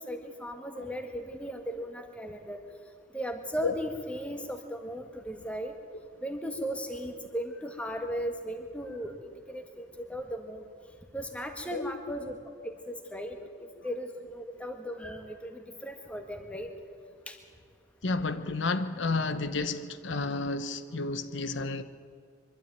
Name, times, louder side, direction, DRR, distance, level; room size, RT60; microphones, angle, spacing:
voice 1, 0.0-2.6 3.1-5.7 6.2-9.1 9.5-10.7 11.1-12.4 12.9-16.7 17.3-17.4, equal, 5° left, 1.7 m, -37 dB
voice 2, 18.0-21.8, left 3 dB, 75° left, 0.9 m, -31 dB
23.5 x 12.5 x 9.1 m
head